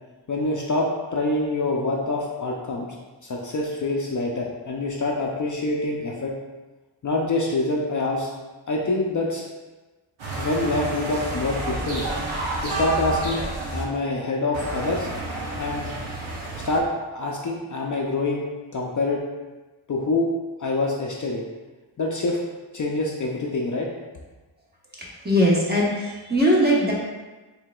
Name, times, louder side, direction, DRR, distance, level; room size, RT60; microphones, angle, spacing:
voice 1, 0.3-2.9 3.2-6.3 7.0-8.3 8.7-9.4 10.4-12.1 12.6-13.4 13.7-15.1 15.6-15.9 16.6-16.9 17.1-18.4 18.7-19.2 19.9-20.3 20.6-21.4 22.0-22.4 22.7-23.9, left 2 dB, 45° left, -2 dB, 0.4 m, -25 dB
sound 1, 10.2-13.8 14.5-16.8, right 2 dB, 80° right, 0.9 m, -30 dB
voice 2, 25.0-26.9, equal, 20° right, -5 dB, 0.9 m, -20 dB
4.6 x 3.3 x 2.2 m, 1.2 s
wide cardioid pair, 115°, 47 cm